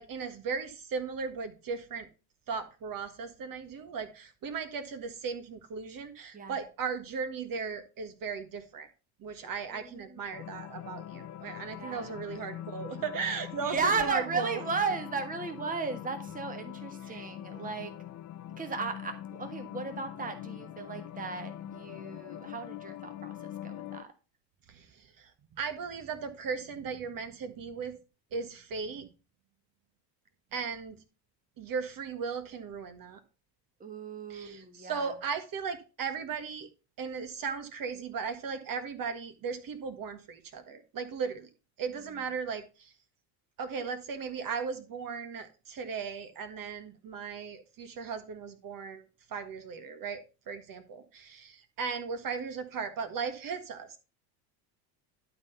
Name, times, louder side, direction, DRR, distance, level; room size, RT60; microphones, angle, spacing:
voice 1, 0.0-2.1 2.5-8.9 9.2-14.6 17.1-17.2 24.7-25.3 25.6-27.9 28.3-29.1 30.5-31.0 31.6-33.2 34.3-36.7 37.0-41.5 41.8-42.9 43.6-49.0 49.3-50.2 50.5-54.0, right 5 dB, 45° right, 9 dB, 1.6 m, -37 dB
voice 2, 9.4-10.3 11.8-12.2 13.6-17.9 18.6-24.1 33.8-35.1 41.9-42.3, right 4 dB, 15° right, 7 dB, 1.4 m, -35 dB
sound 1, 10.3-24.0, left 12 dB, 35° left, 0.8 m, -43 dB
11.5 x 4.0 x 5.5 m, 0.31 s
hypercardioid pair, 85°, 49 cm